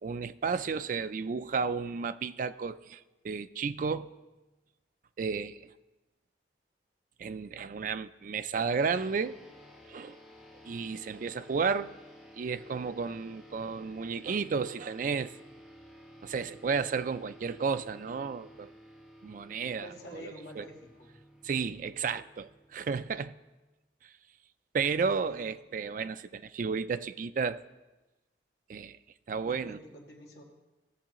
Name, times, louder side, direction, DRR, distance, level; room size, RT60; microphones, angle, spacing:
voice 1, 0.0-4.1 5.2-5.7 7.2-9.4 9.9-10.2 10.6-11.9 12.3-15.3 16.2-18.7 19.2-20.6 21.4-23.3 24.0-24.1 24.7-27.6 28.7-29.0 29.3-29.8, right 5 dB, 45° right, 0.3 m, -33 dB
sound 1, 8.8-23.6, equal, ahead, 1.2 m, -54 dB
voice 2, 19.8-21.2 25.1-25.4 29.4-30.4, left 1 dB, 55° left, 1.8 m, -48 dB
17.0 x 7.0 x 3.0 m
head